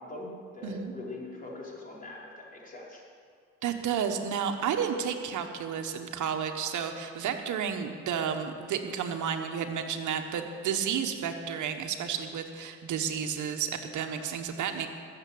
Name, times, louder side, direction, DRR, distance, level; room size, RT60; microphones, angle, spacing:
voice 1, 0.0-3.0, left 2 dB, 30° left, -4 dB, 4.8 m, -42 dB
voice 2, 3.6-14.9, right 7 dB, 75° right, 5 dB, 1.4 m, -31 dB
20.5 x 7.4 x 8.7 m, 2.2 s
cardioid pair, 90°, 30 cm